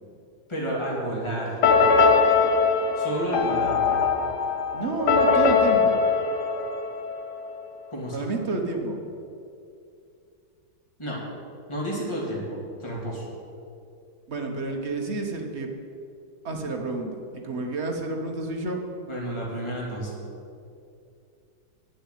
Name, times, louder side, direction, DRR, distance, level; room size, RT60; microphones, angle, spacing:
voice 1, 0.5-1.6 3.0-4.0 7.9-8.2 11.0-11.2 11.7-13.3 19.0-20.1, right 1 dB, 15° left, -4 dB, 2.5 m, -31 dB
sound 1, 1.6-7.4, left 5 dB, 65° left, 1.5 m, -21 dB
voice 2, 4.7-6.0 8.1-9.0 14.3-15.7 16.4-18.8, right 3 dB, 40° right, 2 dB, 1.2 m, -30 dB
8.6 x 8.3 x 8.1 m, 2.5 s
omnidirectional pair, 2.0 m